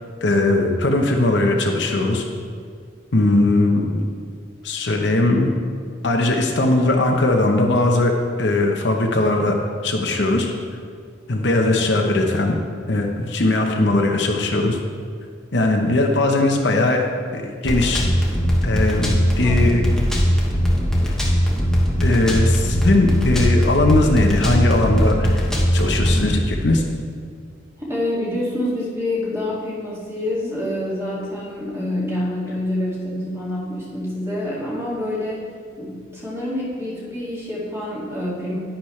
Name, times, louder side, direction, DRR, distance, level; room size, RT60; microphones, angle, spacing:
voice 1, 0.2-2.3 3.1-4.0 4.6-5.5 6.0-8.1 8.4-10.5 11.3-12.6 12.9-14.8 15.5-17.1 17.3-18.0 18.6-19.8 22.0-26.8, left 2 dB, 65° left, 2 dB, 0.9 m, -19 dB
sound 1, 17.7-26.3, equal, 5° left, 1.1 m, -19 dB
voice 2, 19.4-20.0 27.8-35.5 35.8-38.5, left 1 dB, 15° right, -7 dB, 2.2 m, -27 dB
10.5 x 10.0 x 3.2 m, 2.1 s
head